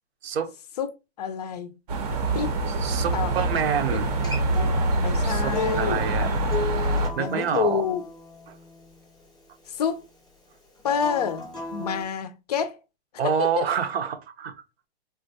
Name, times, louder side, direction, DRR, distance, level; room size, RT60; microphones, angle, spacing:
voice 1, 0.2-0.5 2.7-4.1 5.2-6.4 7.2-7.9 8.5-8.6 13.2-14.5, right 7 dB, 75° right, 0.7 m, -27 dB
voice 2, 1.2-1.7 2.3-2.5 3.1-3.3 5.0-6.0 7.2-8.0 9.7-10.0 10.8-11.4 11.7-12.8 13.4-13.6, left 7 dB, 40° left, 0.4 m, -27 dB
sound 1, 1.9-7.1, right 2 dB, 40° right, 0.6 m, -25 dB
Acoustic guitar, 4.0-9.2 10.8-12.0, left 2 dB, ahead, 0.7 m, -35 dB
3.7 x 2.1 x 2.7 m
hypercardioid pair, 160°, 31 cm